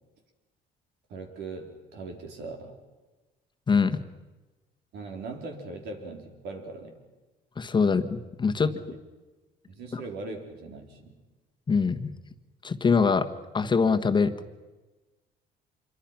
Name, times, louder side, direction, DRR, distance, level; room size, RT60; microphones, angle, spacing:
voice 1, 1.1-2.8 4.9-6.9 8.6-9.0 9.7-11.2, right 3 dB, 80° right, 3 dB, 4.4 m, -40 dB
voice 2, 3.7-4.0 7.6-8.7 9.9-10.0 11.7-12.1 12.6-13.3 13.5-14.3, left 5 dB, 25° left, 7 dB, 1.3 m, -23 dB
26.5 x 23.5 x 5.9 m, 1.2 s
cardioid pair, 110°, 17 cm